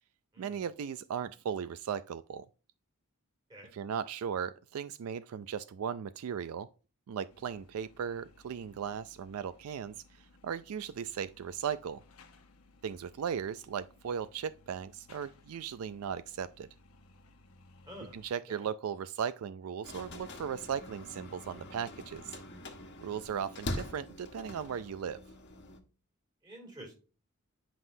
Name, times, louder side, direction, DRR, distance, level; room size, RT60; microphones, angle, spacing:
voice 1, 0.4-2.5 3.7-6.7 7.1-12.0 12.8-16.7 18.1-22.3 23.0-25.2, right 7 dB, 75° right, 0.4 m, -37 dB
sound 1, 7.3-18.3, left 3 dB, 80° left, 1.0 m, -61 dB
sound 2, 19.8-25.8, left 1 dB, 55° left, 1.3 m, -43 dB
voice 2, 26.4-27.0, equal, 20° right, 2.7 m, -48 dB
9.9 x 5.5 x 2.6 m
head